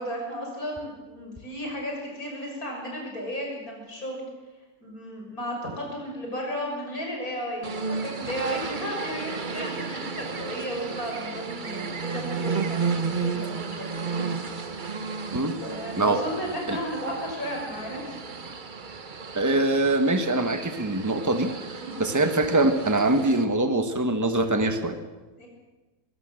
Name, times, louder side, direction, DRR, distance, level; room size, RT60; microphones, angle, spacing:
voice 1, 0.0-4.2 4.8-12.9 13.2-14.1 15.6-18.3 21.8-21.9 25.4-25.5, equal, 90° left, 0 dB, 7.0 m, -34 dB
sound 1, 7.6-23.4, right 4 dB, 40° right, 1.1 m, -33 dB
voice 2, 19.3-21.5 22.0-25.0, right 2 dB, 15° right, 7 dB, 1.5 m, -23 dB
22.0 x 17.0 x 7.7 m, 1.2 s
omnidirectional pair, 1.5 m